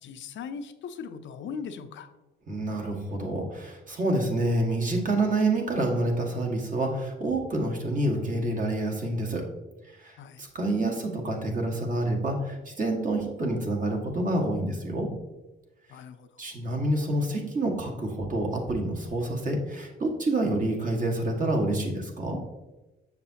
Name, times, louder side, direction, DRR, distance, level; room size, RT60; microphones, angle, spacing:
voice 1, 0.0-2.1 10.2-10.4 15.9-16.4, left 6 dB, 70° left, 8 dB, 0.6 m, -39 dB
voice 2, 2.5-9.4 10.0-15.1 16.4-22.4, right 1 dB, 40° right, 1 dB, 1.7 m, -28 dB
7.1 x 5.9 x 2.8 m, 1.1 s
cardioid pair, 90°, 20 cm